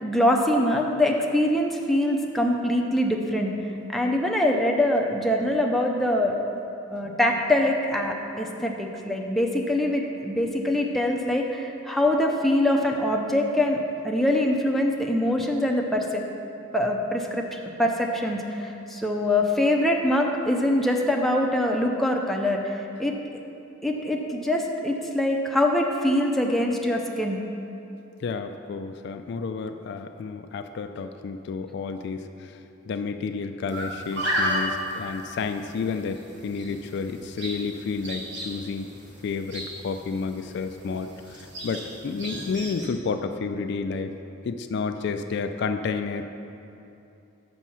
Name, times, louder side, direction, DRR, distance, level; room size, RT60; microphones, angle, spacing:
voice 1, 0.0-3.5 3.9-6.3 6.9-13.8 14.0-16.2 16.7-23.4 23.8-27.4, left 1 dB, ahead, 0 dB, 0.5 m, -24 dB
voice 2, 28.2-32.6 32.9-38.9 39.2-44.2 44.4-46.2, left 4 dB, 60° left, 8 dB, 0.3 m, -31 dB
sound 1, 33.7-42.9, equal, 60° right, 1.4 m, -34 dB
6.2 x 6.1 x 5.6 m, 2.8 s
head